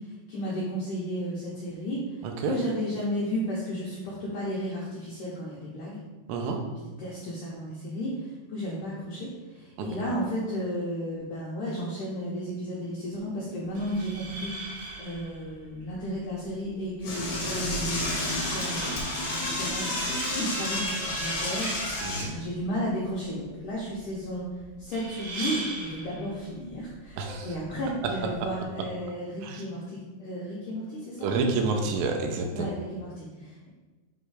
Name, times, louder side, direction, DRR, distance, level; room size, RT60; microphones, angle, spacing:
voice 1, 0.3-2.0 2.4-6.0 7.0-9.3 9.5-14.5 15.0-21.7 22.2-24.5 24.8-31.5 32.5-33.7, equal, 80° left, -6 dB, 1.8 m, -33 dB
voice 2, 2.2-2.6 6.3-6.6 9.8-9.9 22.0-22.3 27.2-27.5 29.4-29.6 31.2-32.7, right 4 dB, 85° right, 3 dB, 2.9 m, -29 dB
sound 1, 13.6-28.6, right 2 dB, 70° right, 2.4 m, -42 dB
Door / Toilet flush, 17.0-22.2, left 1 dB, 55° left, 2.0 m, -30 dB
7.6 x 3.2 x 4.8 m, 1.2 s
omnidirectional pair, 5.0 m